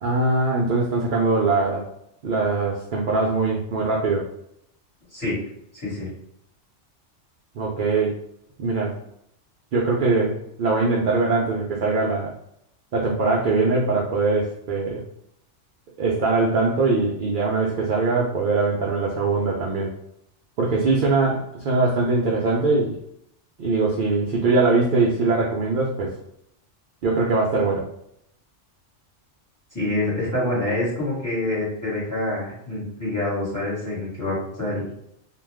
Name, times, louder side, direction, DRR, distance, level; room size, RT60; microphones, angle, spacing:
voice 1, 0.0-1.9 2.2-4.3 7.5-8.1 8.6-8.9 9.7-12.3 12.9-15.0 16.0-19.9 20.6-23.0 23.6-26.2 27.0-27.9, right 3 dB, 60° right, -3 dB, 0.5 m, -22 dB
voice 2, 5.7-6.1 29.7-34.9, left 2 dB, 15° left, -8 dB, 1.3 m, -26 dB
2.4 x 2.3 x 3.3 m, 0.75 s
omnidirectional pair, 1.3 m